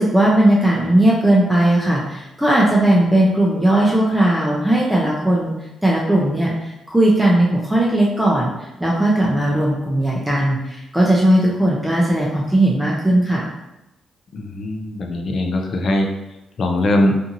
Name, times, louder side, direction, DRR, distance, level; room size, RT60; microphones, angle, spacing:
voice 1, 0.0-5.5 5.8-8.5 8.8-13.5, right 1 dB, 5° right, -5 dB, 0.5 m, -17 dB
voice 2, 14.3-16.1 16.6-17.2, left 1 dB, 50° left, 3 dB, 0.4 m, -20 dB
2.8 x 2.5 x 2.5 m, 0.93 s
cardioid pair, 100°, 0 cm